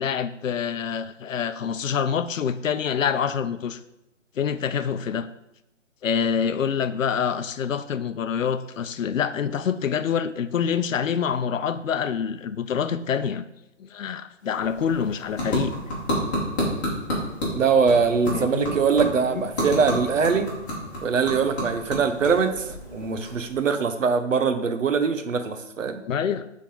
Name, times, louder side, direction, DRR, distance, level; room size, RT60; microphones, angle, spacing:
voice 1, 0.0-3.8 4.4-5.3 6.0-13.4 13.8-15.7 18.3-18.7 19.3-19.4 26.0-26.5, left 7 dB, 85° left, 12 dB, 0.6 m, -26 dB
sound 1, 14.4-23.8, equal, 15° left, 1.2 m, -31 dB
voice 2, 17.5-20.5 21.0-26.0, right 5 dB, 80° right, 9 dB, 0.9 m, -22 dB
8.3 x 3.7 x 3.8 m, 0.89 s
hypercardioid pair, 165°, 38 cm